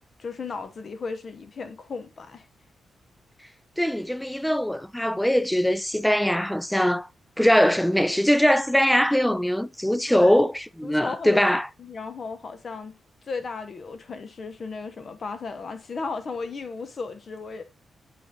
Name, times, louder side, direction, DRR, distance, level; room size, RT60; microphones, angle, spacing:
voice 1, 0.2-2.5 10.1-10.4 10.8-11.5 11.8-13.0 13.3-17.6, left 4 dB, 40° left, 1.0 m, -35 dB
voice 2, 3.8-7.1 7.4-10.5 10.8-11.7, equal, ahead, 0.3 m, -21 dB
9.6 x 3.8 x 3.9 m
wide cardioid pair, 175°, 0 cm